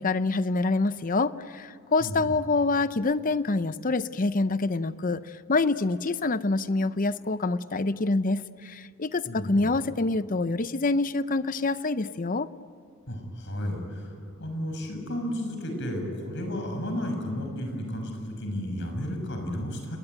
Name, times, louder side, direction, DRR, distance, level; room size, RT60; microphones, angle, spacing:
voice 1, 0.0-12.5, left 3 dB, 40° left, 14 dB, 0.7 m, -26 dB
voice 2, 9.3-9.8 13.1-20.0, equal, 60° left, 4 dB, 6.2 m, -33 dB
29.5 x 21.0 x 9.3 m, 2.3 s
head